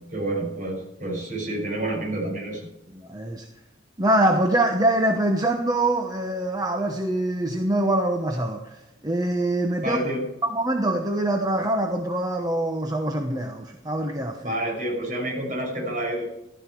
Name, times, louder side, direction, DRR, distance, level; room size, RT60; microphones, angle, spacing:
voice 1, 0.1-2.7 9.8-10.3 14.4-16.3, right 1 dB, 40° right, -1 dB, 5.8 m, -28 dB
voice 2, 2.9-3.5 4.0-10.0 10.4-14.5, right 1 dB, 20° right, 4 dB, 1.0 m, -24 dB
15.5 x 12.5 x 4.6 m, 0.95 s
head